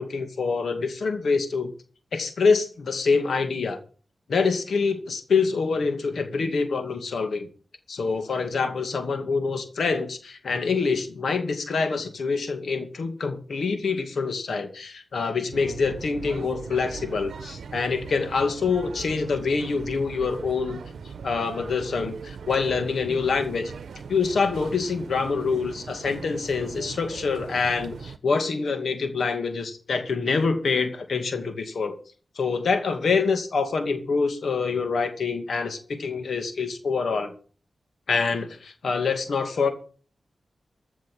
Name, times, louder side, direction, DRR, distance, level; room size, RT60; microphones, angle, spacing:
voice 1, 0.0-1.7 2.1-3.8 4.3-7.5 7.9-20.8 21.2-23.7 24.1-31.9 32.4-37.3 38.1-39.7, left 4 dB, 80° left, 7 dB, 2.2 m, -26 dB
sound 1, 15.5-28.2, right 6 dB, 85° right, 0.8 m, -40 dB
14.5 x 6.2 x 7.7 m, 0.40 s
cardioid pair, 55°, 0 cm